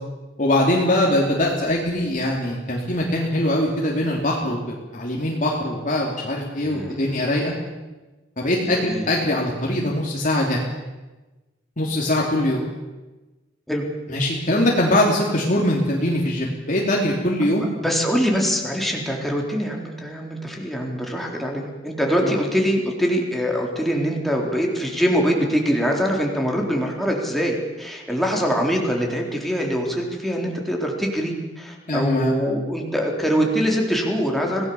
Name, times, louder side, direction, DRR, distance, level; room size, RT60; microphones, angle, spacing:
voice 1, 0.4-7.5 8.4-10.6 11.8-12.6 14.1-17.7 22.2-22.3 31.9-32.3, left 1 dB, 45° left, -2 dB, 3.1 m, -22 dB
voice 2, 6.6-7.0 8.7-9.0 13.7-13.8 17.8-34.6, equal, ahead, -1 dB, 3.8 m, -23 dB
26.0 x 18.0 x 7.1 m, 1.2 s
head